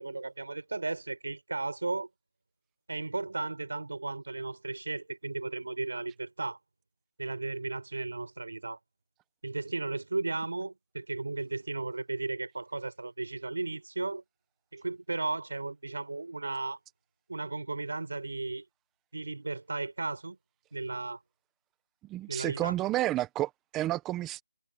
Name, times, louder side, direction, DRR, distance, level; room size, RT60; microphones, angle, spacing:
voice 1, 0.0-2.1 2.9-6.6 7.2-8.8 9.4-14.2 14.7-16.8 17.3-18.6 19.1-20.4 20.7-21.2 22.3-22.8, right 3 dB, 85° right, 6.2 m, -35 dB
voice 2, 22.1-24.4, right 15 dB, 10° right, 1.2 m, -31 dB
figure-of-eight pair, 165°, 0 cm